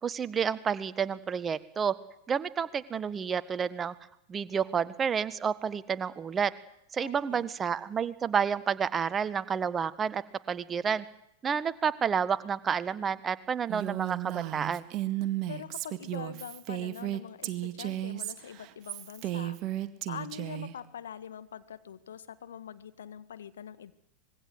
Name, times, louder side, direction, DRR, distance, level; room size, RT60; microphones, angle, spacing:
voice 1, 0.0-1.9 2.3-3.9 4.3-6.5 6.9-10.2 10.5-11.0 11.4-14.8, right 7 dB, 20° right, 15 dB, 1.5 m, -30 dB
voice 2, 7.0-7.5 15.5-19.6 20.1-23.9, left 9 dB, 65° left, 13 dB, 1.8 m, -44 dB
Female speech woman speaking, 13.7-20.7, right 14 dB, 40° right, 1.9 m, -34 dB
25.5 x 22.0 x 8.1 m, 0.76 s
figure-of-eight pair, 90°, 0 cm